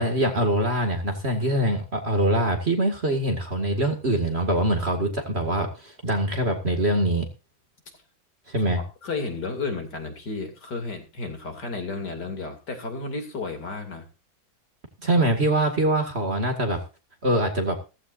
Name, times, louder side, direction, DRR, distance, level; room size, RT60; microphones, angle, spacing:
voice 1, 0.0-7.3 8.5-8.8 15.0-16.8 17.2-17.8, right 1 dB, 30° right, 4 dB, 2.3 m, -23 dB
voice 2, 8.6-14.1, left 3 dB, 55° left, 5 dB, 3.3 m, -33 dB
16.0 x 15.0 x 2.6 m, 0.30 s
omnidirectional pair, 2.1 m